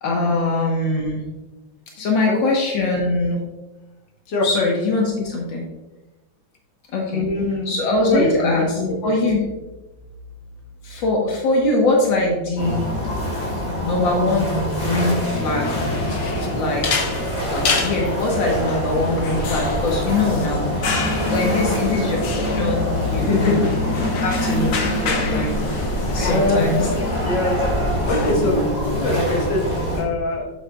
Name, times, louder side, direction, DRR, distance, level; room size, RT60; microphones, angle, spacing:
voice 1, 0.0-1.2 1.9-3.4 4.4-5.7 6.9-7.2 7.7-9.4 10.8-12.9 13.8-15.9 16.5-16.9 17.5-21.0 21.3-22.2 22.5-23.7 24.2-25.6 26.1-26.9, left 2 dB, 85° left, -1 dB, 1.9 m, -22 dB
voice 2, 7.1-7.7 8.0-9.1 21.2-21.6 23.2-23.7 26.2-26.9 27.2-27.6 28.1-30.5, left 2 dB, 70° left, -2 dB, 2.1 m, -23 dB
sound 1, 9.3-25.3, left 6 dB, 70° right, 2.1 m, -37 dB
sound 2, 12.6-30.0, equal, 35° left, 3.1 m, -25 dB
sound 3, 15.6-28.3, left 4 dB, 50° left, 1.2 m, -29 dB
8.3 x 8.1 x 2.3 m, 1.1 s
omnidirectional pair, 2.0 m